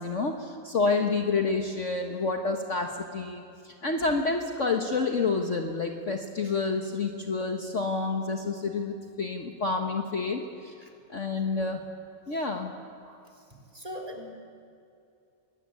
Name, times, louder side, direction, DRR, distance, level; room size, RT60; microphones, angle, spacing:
voice 1, 0.0-10.7 11.1-11.8 12.3-12.7, left 4 dB, 45° left, 3 dB, 1.6 m, -29 dB
voice 2, 13.7-14.3, equal, 20° right, 2 dB, 3.7 m, -40 dB
24.5 x 21.0 x 9.7 m, 2.6 s
omnidirectional pair, 1.9 m